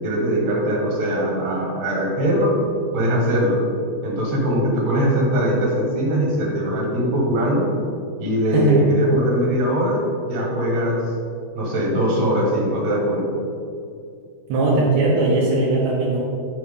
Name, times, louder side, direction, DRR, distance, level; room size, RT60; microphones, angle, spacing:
voice 1, 0.0-2.5 2.9-3.6 4.0-7.7 8.2-10.0 10.3-11.0 11.5-13.4, equal, 55° right, -3 dB, 2.2 m, -21 dB
voice 2, 14.5-16.2, right 2 dB, 70° right, -6 dB, 1.8 m, -19 dB
10.5 x 5.7 x 3.7 m, 2.5 s
omnidirectional pair, 4.7 m